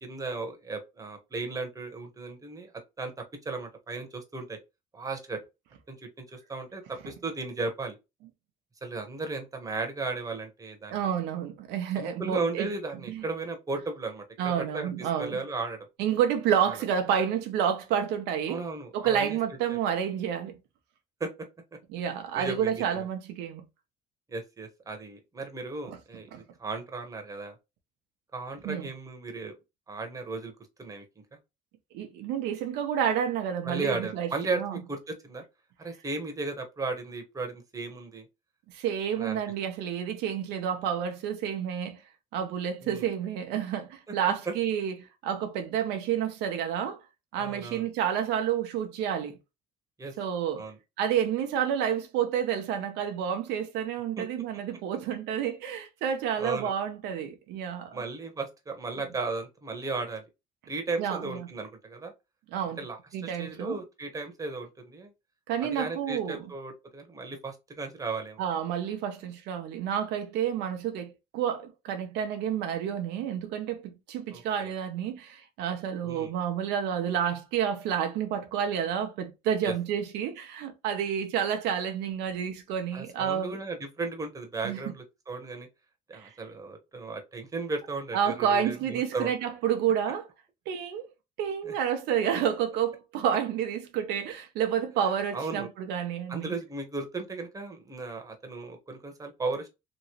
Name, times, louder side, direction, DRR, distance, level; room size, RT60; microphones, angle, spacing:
voice 1, 0.0-2.7 3.0-4.6 4.9-5.4 5.9-8.0 8.8-11.1 12.0-15.8 16.6-16.8 18.5-19.4 19.7-19.8 21.2-21.3 22.3-23.1 24.3-27.6 28.3-29.5 29.9-30.5 30.8-31.0 33.6-35.4 35.8-38.3 39.2-39.4 42.8-43.1 44.5-44.6 47.3-47.9 50.0-50.1 50.6-50.8 54.2-54.3 56.4-56.7 57.9-60.2 60.7-62.1 62.8-65.1 65.6-68.4 74.3-74.7 76.0-76.3 79.6-79.7 82.9-85.7 86.1-89.3 91.6-91.7 95.3-95.7 96.3-99.7, right 3 dB, 20° right, 0.9 m, -35 dB
voice 2, 10.9-12.7 13.1-13.2 14.4-15.4 16.0-18.6 18.9-20.6 21.9-23.6 25.9-26.0 26.3-26.4 28.6-28.9 31.9-34.3 34.5-34.8 38.7-42.0 42.3-44.9 45.2-47.0 47.3-49.4 50.2-50.6 51.0-58.0 61.0-61.4 62.5-62.8 63.1-63.8 65.5-66.4 68.4-83.6 84.6-84.8 86.1-86.3 88.1-90.3 90.7-91.1 91.4-96.5, right 8 dB, 90° right, 0.6 m, -29 dB
3.0 x 2.8 x 2.8 m
cardioid pair, 110°, 17 cm